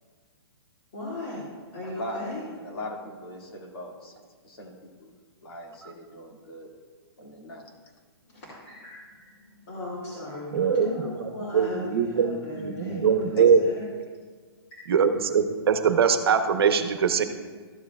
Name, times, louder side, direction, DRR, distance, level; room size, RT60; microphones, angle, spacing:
voice 1, 0.9-1.4 1.7-2.4 8.3-13.3 13.6-13.9, left 2 dB, 35° left, -9 dB, 2.2 m, -36 dB
voice 2, 1.8-4.2 4.4-5.1 5.4-6.7 7.2-7.7 13.4-13.7, left 1 dB, 65° left, 0 dB, 2.1 m, -39 dB
voice 3, 10.5-10.9 11.5-13.6 14.9-17.2, right 7 dB, 65° right, 7 dB, 0.9 m, -22 dB
13.5 x 7.4 x 2.4 m, 1.5 s
hypercardioid pair, 170°, 14 cm